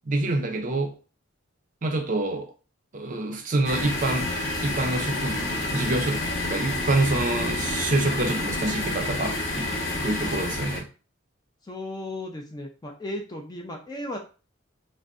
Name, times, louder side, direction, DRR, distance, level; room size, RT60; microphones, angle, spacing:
voice 1, 0.1-0.9 1.8-2.5 2.9-4.3 4.6-9.7 10.0-10.9, right 2 dB, 40° right, 4 dB, 0.5 m, -27 dB
sound 1, 3.6-10.8, left 2 dB, 60° left, 0.8 m, -29 dB
voice 2, 11.6-14.2, left 1 dB, 20° left, 2 dB, 0.4 m, -35 dB
2.5 x 2.1 x 3.5 m, 0.34 s
head